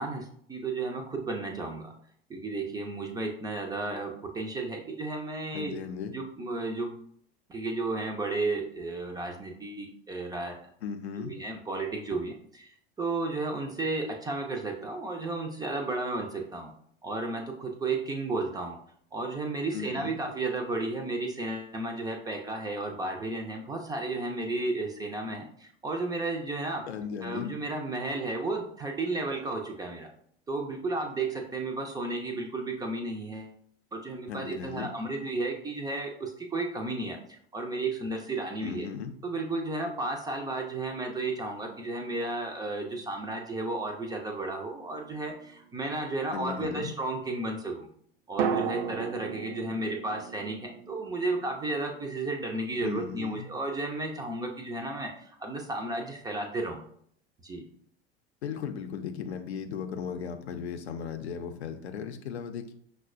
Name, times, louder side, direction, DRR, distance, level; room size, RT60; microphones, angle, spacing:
voice 1, 0.0-1.9 2.3-5.7 6.1-7.0 7.5-10.6 11.2-16.7 17.0-18.8 19.1-26.8 27.2-30.1 30.5-33.5 33.9-38.9 39.2-47.9 48.3-56.8 57.4-57.7, right 2 dB, 10° right, 2 dB, 0.3 m, -33 dB
voice 2, 5.5-6.2 10.8-11.3 19.7-20.2 26.8-27.6 34.3-34.9 38.6-39.2 46.3-46.9 52.8-53.5 58.4-62.7, left 7 dB, 75° left, 6 dB, 0.5 m, -36 dB
sound 1, 44.8-46.0 48.4-52.4 52.6-52.7, right 7 dB, 65° right, 0.5 m, -35 dB
5.7 x 2.1 x 2.4 m, 0.65 s
figure-of-eight pair, 80°, 33 cm